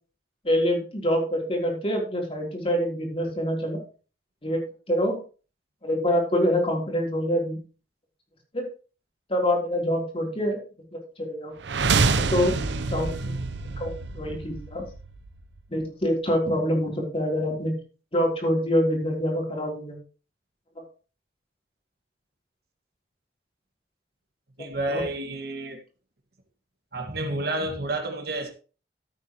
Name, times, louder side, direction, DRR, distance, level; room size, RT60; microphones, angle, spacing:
voice 1, 0.4-3.8 4.4-4.6 4.9-5.2 5.8-7.6 8.5-8.7 9.3-10.6 11.2-11.5 12.3-12.6 12.9-13.3 13.8-14.8 15.7-17.8 18.1-20.0 24.9-25.0, equal, 30° left, 3.6 m, -25 dB
sound 1, 11.6-15.6, right 4 dB, 85° right, 0.7 m, -27 dB
voice 2, 24.6-25.8 26.9-28.5, right 2 dB, 60° right, 2.0 m, -30 dB
13.5 x 8.8 x 3.1 m
head